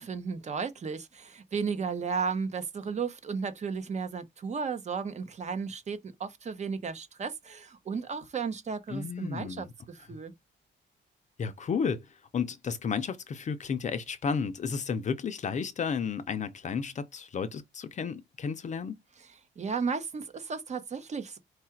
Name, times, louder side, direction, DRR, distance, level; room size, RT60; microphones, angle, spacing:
voice 1, 0.0-10.3 19.6-21.4, right 5 dB, 35° right, 0.8 m, -34 dB
voice 2, 8.9-9.7 11.4-19.0, left 6 dB, 40° left, 0.5 m, -32 dB
4.7 x 2.4 x 4.4 m
cardioid pair, 150°, 20 cm